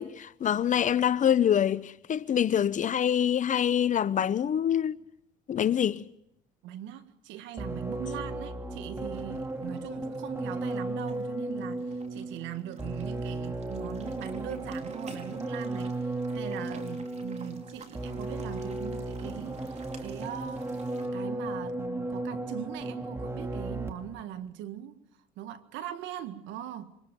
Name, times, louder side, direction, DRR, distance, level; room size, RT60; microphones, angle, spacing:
voice 1, 0.0-5.0 5.5-6.1, left 9 dB, 40° left, 0.8 m, -25 dB
voice 2, 6.6-20.7 21.1-25.0 25.4-27.0, right 11 dB, 70° right, 1.8 m, -41 dB
sound 1, 7.6-24.2, right 2 dB, 10° right, 2.8 m, -35 dB
sound 2, 9.1-21.1, right 4 dB, 35° right, 4.7 m, -54 dB
27.5 x 24.0 x 5.3 m
supercardioid pair, 75°, 20 cm